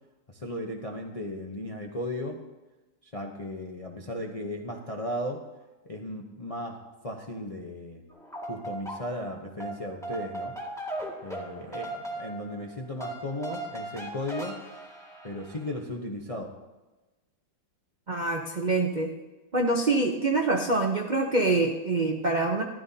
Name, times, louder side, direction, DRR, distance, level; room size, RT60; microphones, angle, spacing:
voice 1, 0.3-2.4 3.0-5.4 5.8-8.0 8.5-10.6 11.2-14.6 15.2-16.5, left 1 dB, 40° left, 1 dB, 0.5 m, -36 dB
sound 1, 8.1-9.3 9.6-15.7, right 2 dB, ahead, 1.8 m, -38 dB
voice 2, 18.1-19.1 19.5-22.6, right 2 dB, 55° right, 3 dB, 0.5 m, -25 dB
13.5 x 12.5 x 2.8 m, 1.1 s
omnidirectional pair, 2.0 m